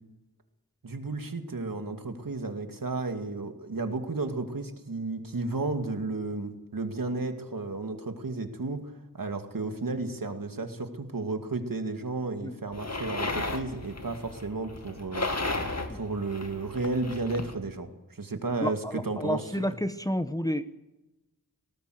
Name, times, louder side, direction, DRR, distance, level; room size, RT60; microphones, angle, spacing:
voice 1, 0.8-15.3 15.9-19.7, right 3 dB, 70° right, 6 dB, 2.3 m, -33 dB
sound 1, 12.7-17.5, left 2 dB, 50° left, 2.2 m, -34 dB
voice 2, 18.6-20.8, equal, 10° left, 10 dB, 1.0 m, -30 dB
19.0 x 18.0 x 7.9 m, 1.0 s
wide cardioid pair, 50°, 35 cm